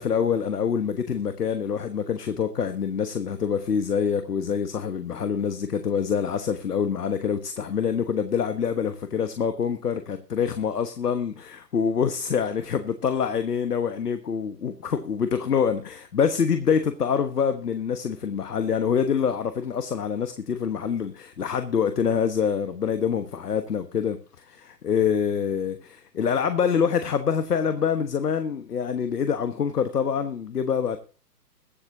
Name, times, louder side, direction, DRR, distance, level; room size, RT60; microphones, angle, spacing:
voice 1, 0.0-31.0, left 7 dB, 70° left, 1.3 m, -26 dB
22.0 x 7.5 x 2.8 m
figure-of-eight pair, 135°, 49 cm